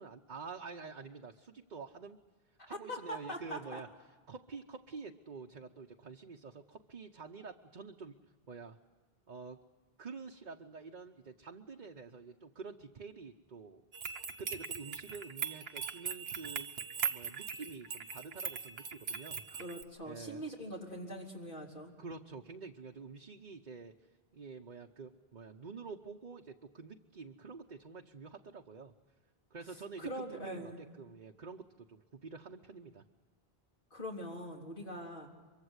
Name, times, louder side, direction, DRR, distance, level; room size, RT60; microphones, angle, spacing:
voice 1, 0.0-2.2 2.7-3.9 4.3-8.2 8.5-8.8 9.3-9.6 10.0-13.8 14.4-16.7 17.1-19.4 20.0-20.4 22.0-23.9 24.3-28.9 29.5-33.0, right 4 dB, 45° right, 2 dB, 1.0 m, -48 dB
voice 2, 2.9-3.8 19.5-21.9 30.0-30.8 33.9-35.3, equal, 55° left, -2 dB, 3.6 m, -42 dB
sound 1, 13.9-19.8, right 6 dB, 70° right, 1.2 m, -40 dB
24.0 x 23.5 x 8.0 m, 1.3 s
omnidirectional pair, 1.0 m